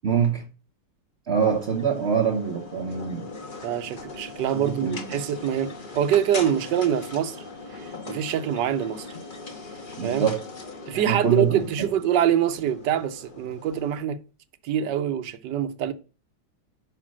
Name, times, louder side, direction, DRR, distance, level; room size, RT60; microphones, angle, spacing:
voice 1, 0.0-0.5 1.3-3.3 4.5-5.1 10.0-10.5 10.9-11.9, right 6 dB, 50° right, 0.8 m, -25 dB
sound 1, 1.4-14.0, left 3 dB, 35° left, 1.1 m, -40 dB
voice 2, 3.6-7.4 7.7-9.1 10.0-10.3 10.9-14.2 14.6-15.9, right 9 dB, 75° right, 1.3 m, -25 dB
5.7 x 5.3 x 6.0 m
omnidirectional pair, 2.0 m